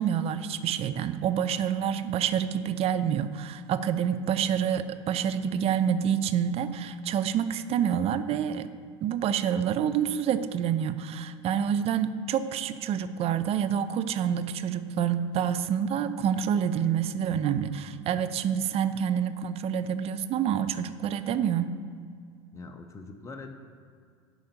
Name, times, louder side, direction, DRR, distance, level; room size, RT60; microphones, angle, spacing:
voice 1, 0.0-8.7 9.0-21.8, right 8 dB, 40° right, 11 dB, 0.6 m, -27 dB
voice 2, 22.5-23.5, left 3 dB, 20° left, 4 dB, 0.9 m, -42 dB
11.0 x 4.0 x 6.9 m, 2.2 s
hypercardioid pair, 80°, 16 cm